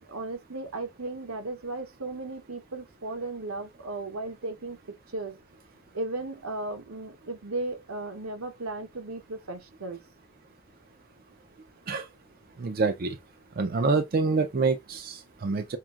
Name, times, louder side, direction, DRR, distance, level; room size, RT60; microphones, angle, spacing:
voice 1, 0.1-5.4 5.9-10.0, right 2 dB, 85° right, 1.0 m, -36 dB
voice 2, 12.6-13.1 13.6-15.8, right 4 dB, 45° right, 0.5 m, -26 dB
5.8 x 2.7 x 2.4 m
head